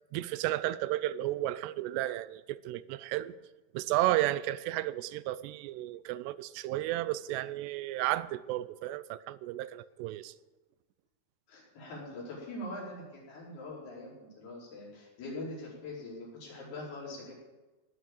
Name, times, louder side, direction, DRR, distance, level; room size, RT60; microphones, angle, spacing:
voice 1, 0.1-3.3 3.7-10.3, right 15 dB, 85° right, 16 dB, 2.7 m, -33 dB
voice 2, 11.5-17.3, left 1 dB, 70° left, -5 dB, 6.7 m, -43 dB
18.5 x 6.2 x 8.7 m, 1.1 s
omnidirectional pair, 4.8 m